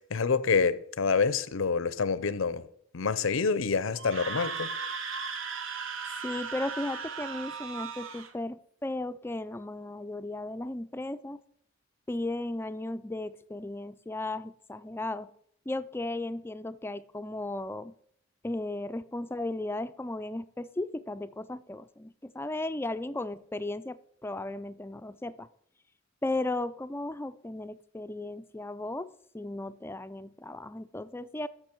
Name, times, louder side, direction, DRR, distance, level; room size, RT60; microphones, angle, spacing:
voice 1, 0.1-2.6 2.9-4.7, left 5 dB, 90° left, 0.6 m, -27 dB
Screaming, 3.9-8.3, right 5 dB, 85° right, 1.2 m, -37 dB
voice 2, 6.2-8.6 8.8-11.4 12.1-15.3 15.7-17.9 18.4-25.5 26.2-31.5, left 2 dB, 10° left, 0.4 m, -35 dB
13.5 x 6.1 x 4.5 m
head